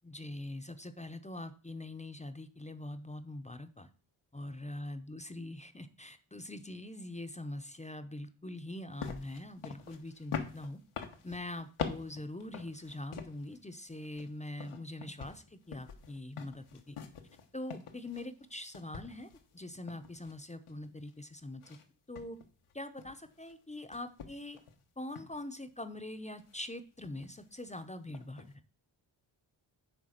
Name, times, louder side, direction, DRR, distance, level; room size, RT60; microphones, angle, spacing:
voice 1, 0.0-3.9 4.3-10.8 11.2-17.0 17.5-21.8 22.1-22.4 22.7-24.6 25.0-28.5, left 1 dB, 15° left, 9 dB, 0.7 m, -43 dB
sound 1, 9.0-13.6 13.9-18.5 18.7-21.1 21.6-21.8 22.1-23.5 23.9-24.7 25.1-25.4 26.4-26.7 27.0-27.4 27.7-27.8 28.1-28.5, left 7 dB, 90° left, 1.2 m, -44 dB
9.6 x 3.4 x 6.4 m, 0.38 s
cardioid pair, 80°, 49 cm